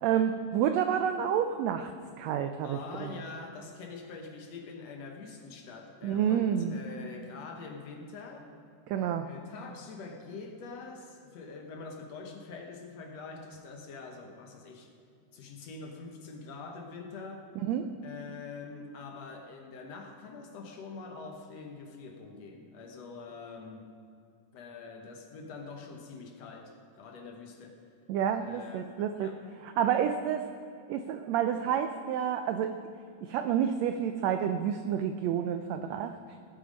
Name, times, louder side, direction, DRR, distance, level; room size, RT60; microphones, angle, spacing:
voice 1, 0.0-1.9 2.2-3.1 6.0-6.8 8.9-9.3 17.6-17.9 28.1-29.3 29.8-30.5 30.9-32.7 33.2-36.2, right 9 dB, 85° right, 7 dB, 1.5 m, -29 dB
voice 2, 2.6-8.5 9.2-14.9 15.3-17.5 18.0-23.9 24.5-27.8 28.4-28.8 29.1-29.4, left 4 dB, 65° left, 2 dB, 1.9 m, -45 dB
18.5 x 7.7 x 5.2 m, 2.5 s
omnidirectional pair, 3.6 m